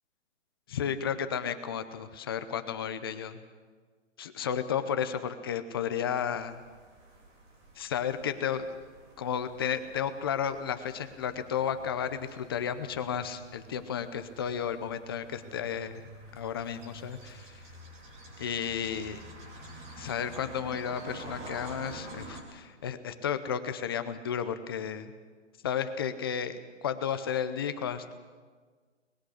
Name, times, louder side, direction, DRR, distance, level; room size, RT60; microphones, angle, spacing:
voice 1, 0.7-3.4 4.2-6.6 7.8-8.7 9.2-16.0 16.3-17.6 18.4-19.2 20.0-25.1 25.6-28.1, left 8 dB, 20° left, 10 dB, 0.7 m, -33 dB
sound 1, 6.4-22.4, right 1 dB, 15° right, 2.5 m, -49 dB
23.0 x 20.5 x 6.4 m, 1.5 s
hypercardioid pair, 165°, 37 cm